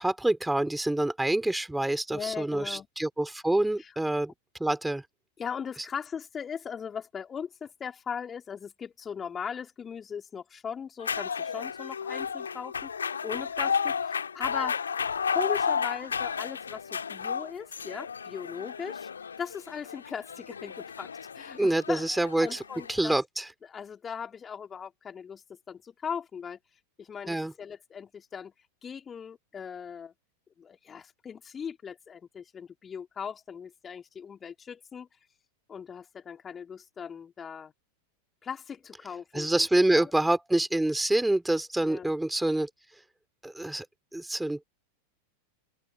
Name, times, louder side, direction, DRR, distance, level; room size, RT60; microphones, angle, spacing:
voice 1, 0.0-4.3 4.6-5.0 21.6-22.6 22.9-23.5 27.3-27.5 39.3-42.7 43.4-43.9 44.1-44.6, right 1 dB, 5° right, 4.1 m, -26 dB
voice 2, 2.1-2.9 3.8-3.9 5.4-12.9 13.2-14.8 15.3-19.1 19.4-21.1 21.3-23.2 23.6-26.6 27.0-28.5 28.8-30.1 30.6-35.1 35.7-37.7 38.4-40.1 41.8-42.1, left 7 dB, 20° left, 3.3 m, -39 dB
sound 1, 11.0-23.0, left 6 dB, 70° left, 1.9 m, -33 dB
open air
figure-of-eight pair, 90°, 0 cm